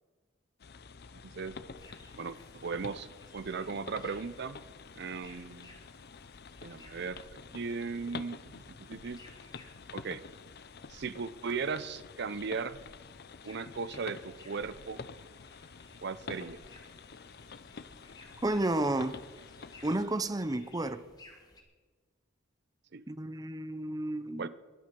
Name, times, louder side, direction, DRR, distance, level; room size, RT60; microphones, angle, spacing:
sound 1, 0.6-20.1, left 5 dB, 55° left, 0.6 m, -48 dB
voice 1, 1.2-1.6 2.2-3.1 3.3-4.6 5.0-5.7 6.6-9.2 9.9-10.2 10.9-12.8 13.4-15.0 16.0-16.6 22.9-23.0 24.4-24.5, right 5 dB, 60° right, 0.6 m, -37 dB
sound 2, 1.8-21.6, left 2 dB, 20° left, 2.1 m, -59 dB
voice 2, 18.4-19.2 19.8-21.0 23.1-24.5, right 1 dB, 20° right, 0.7 m, -31 dB
22.0 x 8.4 x 5.3 m
head